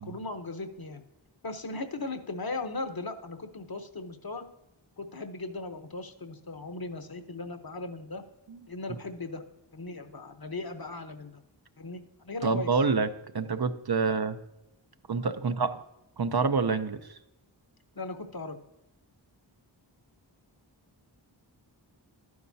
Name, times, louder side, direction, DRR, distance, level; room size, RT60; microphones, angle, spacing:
voice 1, 0.0-1.0 1.4-4.5 5.0-8.2 8.7-9.4 9.7-11.4 11.8-12.7 18.0-18.6, left 3 dB, 50° left, 7 dB, 0.9 m, -38 dB
voice 2, 12.4-13.1 13.3-14.4 15.1-15.8 16.2-17.2, right 4 dB, 55° right, 9 dB, 0.7 m, -27 dB
11.5 x 9.6 x 2.7 m, 0.88 s
wide cardioid pair, 50°, 45 cm